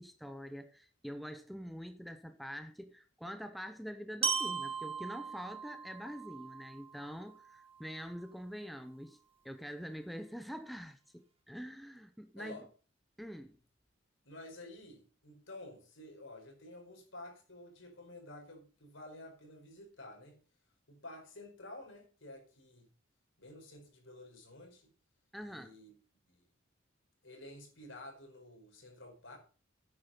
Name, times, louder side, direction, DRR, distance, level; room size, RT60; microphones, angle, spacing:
voice 1, 0.0-9.2 9.4-12.6 13.2-13.6 25.3-25.7, equal, ahead, 0.7 m, -45 dB
Glockenspiel, 4.2-8.2, right 6 dB, 30° right, 1.4 m, -39 dB
voice 2, 12.4-12.7 14.2-20.4 20.9-22.9 23.4-24.9 25.4-25.9 26.3-26.4 27.2-29.4, left 1 dB, 75° left, 5.0 m, -51 dB
9.7 x 8.8 x 5.8 m
head